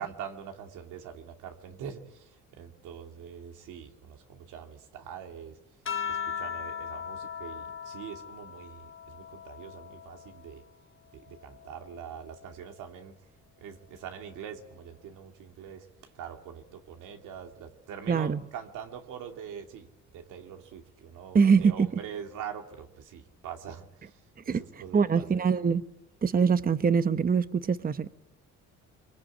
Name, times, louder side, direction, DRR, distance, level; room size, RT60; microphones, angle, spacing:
voice 1, 0.0-5.6 6.1-10.6 11.1-13.1 13.6-25.4, right 8 dB, 90° right, 2.5 m, -43 dB
sound 1, 5.8-10.6 11.1-12.8 14.0-14.5, left 7 dB, 45° left, 1.2 m, -39 dB
voice 2, 18.1-18.4 21.3-21.9 24.5-24.6 24.9-25.8 26.2-28.1, right 6 dB, 30° right, 0.9 m, -23 dB
24.0 x 23.5 x 8.7 m
cardioid pair, 90°, 30 cm